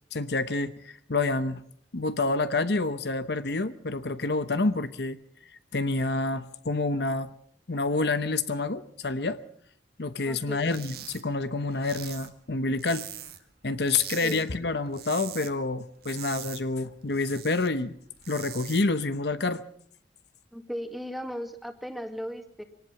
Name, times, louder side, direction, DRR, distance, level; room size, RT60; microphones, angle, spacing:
voice 1, 0.1-1.6 1.9-5.2 5.7-7.3 7.7-9.4 10.0-13.1 13.6-18.0 18.3-19.6, left 3 dB, 65° left, 12 dB, 0.9 m, -28 dB
voice 2, 10.3-10.7 14.2-14.5 20.5-22.6, equal, ahead, 5 dB, 2.1 m, -36 dB
sound 1, 10.6-11.2 11.5-13.5 13.8-14.4 14.8-15.5 15.8-17.7 18.1-18.8, right 11 dB, 60° right, 1.9 m, -42 dB
23.5 x 18.5 x 5.8 m, 0.64 s
head